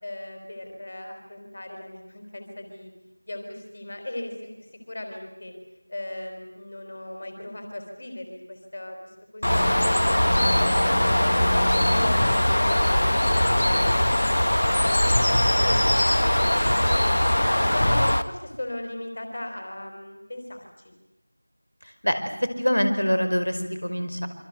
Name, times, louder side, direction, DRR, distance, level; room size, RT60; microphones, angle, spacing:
voice 1, 0.0-2.9 3.3-5.5 5.9-9.0 9.3-10.5 11.0-17.1 17.6-20.9, left 1 dB, 35° left, 4 dB, 4.4 m, -37 dB
Bird, 9.4-18.2, left 1 dB, 55° left, 1.7 m, -21 dB
voice 2, 22.0-24.3, equal, 80° left, 8 dB, 5.1 m, -24 dB
27.5 x 25.0 x 8.1 m, 0.93 s
figure-of-eight pair, 175°, 0 cm